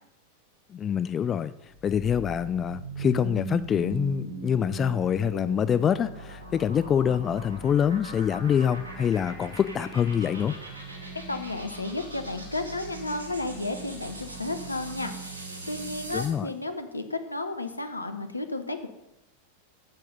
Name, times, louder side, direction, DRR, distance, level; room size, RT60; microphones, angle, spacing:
voice 1, 0.7-1.5 1.8-10.6 16.1-16.5, left 8 dB, 25° left, 14 dB, 0.3 m, -25 dB
sound 1, 1.6-16.4, right 4 dB, 70° right, 2.6 m, -40 dB
voice 2, 11.3-15.1 15.7-18.9, left 2 dB, 85° left, 8 dB, 0.9 m, -33 dB
9.5 x 7.6 x 5.4 m, 0.87 s
figure-of-eight pair, 90°, 0 cm